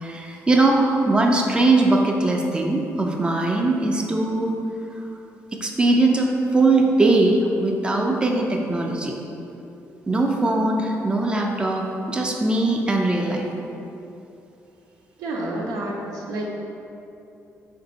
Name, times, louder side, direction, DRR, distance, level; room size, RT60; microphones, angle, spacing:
voice 1, 0.0-4.5 5.6-9.1 10.1-13.5, right 2 dB, 15° right, 0 dB, 0.4 m, -20 dB
voice 2, 15.2-16.5, right 1 dB, 85° right, -2 dB, 0.5 m, -29 dB
3.3 x 2.6 x 3.9 m, 2.8 s
cardioid pair, 85°, 6 cm